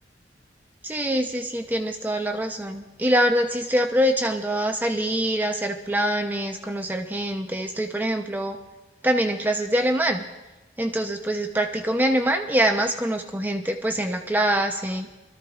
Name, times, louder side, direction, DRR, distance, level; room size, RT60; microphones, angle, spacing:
voice 1, 0.8-8.6 9.0-10.2 10.8-15.1, right 1 dB, 10° right, 4 dB, 0.6 m, -24 dB
24.5 x 14.0 x 2.4 m, 1.1 s
head